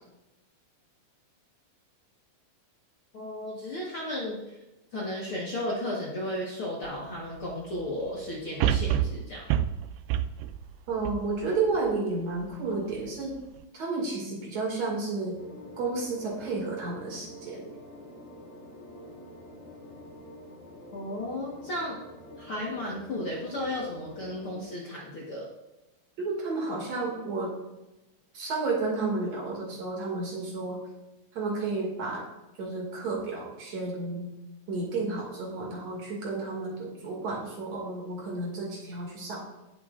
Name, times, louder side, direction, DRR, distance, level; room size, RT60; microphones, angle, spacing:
voice 1, 3.1-4.6 4.9-9.5 20.9-22.0 22.4-25.5, left 1 dB, 50° left, -4 dB, 1.9 m, -34 dB
sound 1, 6.9-7.0 8.6-11.9 12.4-12.5, right 10 dB, 90° right, 2.4 m, -28 dB
voice 2, 10.9-13.4 13.7-15.4 15.8-17.6 26.2-27.5 28.3-30.8 31.4-32.2 32.6-34.3 34.7-39.4, right 3 dB, 50° right, -2 dB, 3.5 m, -31 dB
sound 2, 15.3-24.6, equal, 85° left, 5.0 m, -46 dB
17.5 x 8.0 x 2.6 m, 1.0 s
omnidirectional pair, 4.1 m